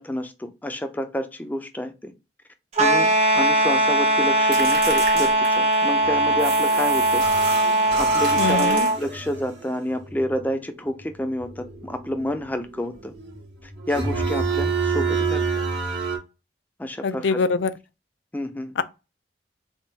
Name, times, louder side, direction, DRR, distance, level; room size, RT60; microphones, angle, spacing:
voice 1, 0.0-2.1 2.8-7.6 7.9-13.1 13.6-15.6 16.8-17.4 18.3-18.7, left 1 dB, 10° left, 0.4 m, -29 dB
sound 1, 2.7-9.0, right 1 dB, 35° right, 0.7 m, -20 dB
sound 2, 4.5-5.9 6.4-7.7 8.2-9.3, right 5 dB, 50° right, 1.1 m, -34 dB
sound 3, 6.0-16.2, right 4 dB, 80° right, 1.3 m, -29 dB
voice 2, 8.4-8.9 17.0-17.7, left 4 dB, 85° left, 0.4 m, -23 dB
3.6 x 2.3 x 4.1 m
head